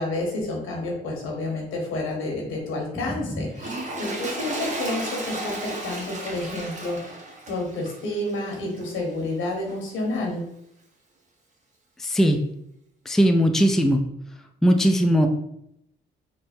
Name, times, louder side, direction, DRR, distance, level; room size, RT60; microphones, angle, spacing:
voice 1, 0.0-7.1 7.5-10.4, left 2 dB, 90° left, 0 dB, 1.1 m, -29 dB
Toilet flush, 3.5-9.0 9.7-9.8, right 2 dB, 35° right, 1.0 m, -34 dB
voice 2, 12.0-12.4 13.1-14.0 14.6-15.3, equal, ahead, 5 dB, 0.3 m, -19 dB
3.5 x 2.0 x 4.2 m, 0.77 s
cardioid pair, 90°, 20 cm